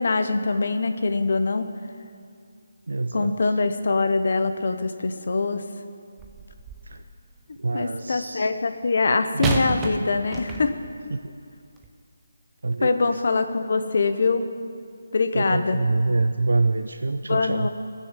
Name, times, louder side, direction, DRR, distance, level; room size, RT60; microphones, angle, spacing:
voice 1, 0.0-1.7 3.1-5.6 7.7-10.8 12.8-14.5 15.1-15.8 17.3-17.7, left 3 dB, 45° left, 9 dB, 0.8 m, -23 dB
voice 2, 2.9-3.5 6.8-7.0 7.6-8.5 9.3-9.6 11.1-11.3 12.6-13.2 15.3-17.7, right 3 dB, 80° right, 8 dB, 0.5 m, -26 dB
sound 1, 6.2-7.0 9.4-11.0 11.8-11.9, right 3 dB, 5° right, 0.5 m, -31 dB
17.5 x 6.5 x 7.4 m, 2.4 s
hypercardioid pair, 175°, 0 cm